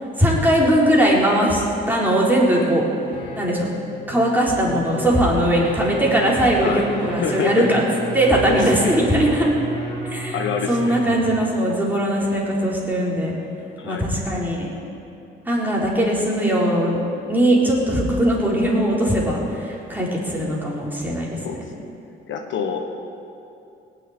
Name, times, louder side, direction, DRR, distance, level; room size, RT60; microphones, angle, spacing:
voice 1, 0.2-2.8 3.4-3.7 4.1-7.8 8.1-9.5 10.1-10.4 10.7-13.4 13.8-14.7 15.5-17.0 17.3-21.6, right 1 dB, 10° right, -4 dB, 4.0 m, -20 dB
sound 1, 3.0-11.4, equal, 30° left, 4.2 m, -34 dB
voice 2, 7.2-7.7 8.5-8.7 10.3-11.0 13.8-14.0 21.4-21.6 22.3-22.9, left 6 dB, 70° left, 4 dB, 1.3 m, -26 dB
18.0 x 6.6 x 9.7 m, 2.7 s
cardioid pair, 90°, 20 cm